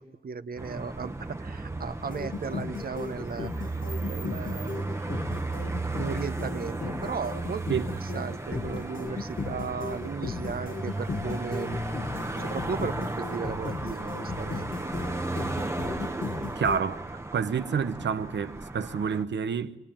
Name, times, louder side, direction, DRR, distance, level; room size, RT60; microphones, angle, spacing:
voice 1, 0.0-5.0 5.9-7.8 8.1-11.8 12.4-14.9, right 5 dB, 55° right, 1.0 m, -36 dB
sound 1, 0.6-19.2, right 2 dB, 15° right, 1.1 m, -35 dB
sound 2, 2.0-16.8, left 5 dB, 50° left, 1.0 m, -37 dB
voice 2, 16.4-19.8, right 6 dB, 80° right, 1.1 m, -29 dB
26.5 x 21.0 x 8.9 m
wide cardioid pair, 125°, 18 cm